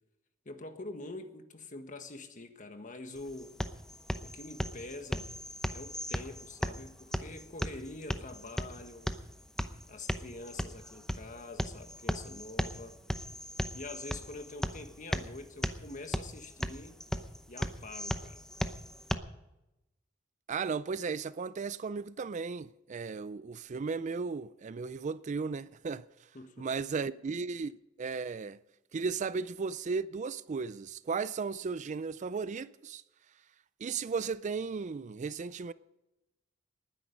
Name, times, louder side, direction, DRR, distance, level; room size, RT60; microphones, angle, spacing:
voice 1, 0.4-3.6 4.2-5.3 5.7-9.1 9.9-12.9 13.7-17.0 17.5-18.4 26.3-26.7, left 2 dB, 40° left, 1.5 m, -45 dB
sound 1, 3.1-19.1, equal, 5° left, 0.7 m, -37 dB
voice 2, 20.5-26.0 26.6-28.6 28.9-33.0 33.8-35.7, right 5 dB, 40° right, 0.4 m, -35 dB
19.5 x 10.0 x 5.3 m
head